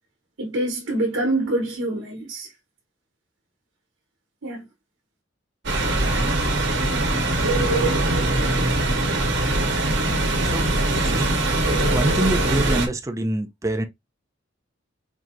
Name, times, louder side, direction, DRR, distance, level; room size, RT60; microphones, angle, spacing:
voice 1, 0.4-2.5 4.4-4.6, right 1 dB, 80° right, 1.0 m, -25 dB
sound 1, 5.7-12.9, right 2 dB, 60° right, 1.1 m, -22 dB
voice 2, 10.9-11.3 11.8-13.8, right 1 dB, 15° right, 0.4 m, -26 dB
4.6 x 2.7 x 2.5 m
head